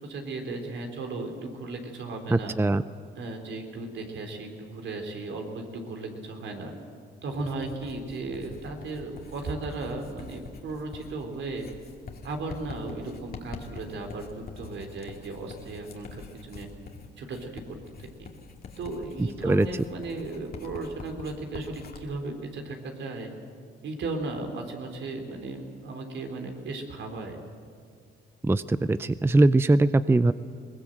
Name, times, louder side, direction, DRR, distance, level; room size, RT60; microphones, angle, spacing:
voice 1, 0.0-2.6 3.1-6.7 7.2-11.7 12.2-16.7 17.2-18.3 18.8-23.3 23.8-27.4, right 2 dB, 70° right, 4 dB, 3.6 m, -36 dB
voice 2, 2.3-2.8 19.2-19.7 28.4-30.3, right 2 dB, 10° right, 14 dB, 0.5 m, -21 dB
Writing, 7.4-22.0, left 4 dB, 50° left, 2.5 m, -45 dB
22.0 x 20.0 x 7.8 m, 2.2 s
cardioid pair, 90°, 20 cm